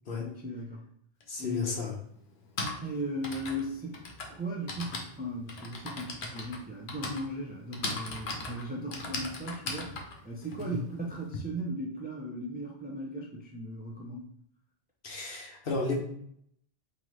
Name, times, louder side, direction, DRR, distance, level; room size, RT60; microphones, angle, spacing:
voice 1, 0.2-0.9 1.4-1.8 2.8-4.0 4.3-10.0 10.2-14.3, equal, 15° right, -1 dB, 0.3 m, -37 dB
Typing, 1.2-1.3 2.3-11.4, left 3 dB, 85° left, 1.0 m, -39 dB
voice 2, 1.3-2.0 10.6-10.9 15.0-16.0, left 3 dB, 65° left, -1 dB, 1.1 m, -33 dB
3.9 x 2.7 x 3.1 m, 0.68 s
omnidirectional pair, 1.0 m